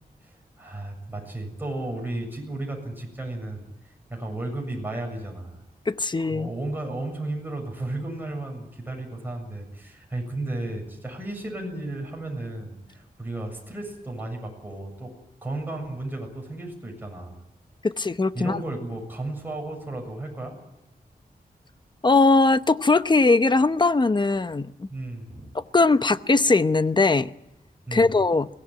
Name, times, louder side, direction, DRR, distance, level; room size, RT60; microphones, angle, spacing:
voice 1, 0.2-5.6 6.3-15.1 15.4-17.4 18.3-20.6 24.9-25.4 27.9-28.2, right 2 dB, 10° right, 7.3 m, -34 dB
voice 2, 5.9-6.5 17.8-18.6 22.0-24.9 25.5-27.3 27.9-28.5, left 3 dB, 30° left, 0.9 m, -20 dB
22.5 x 17.5 x 9.3 m
wide cardioid pair, 105°, 16 cm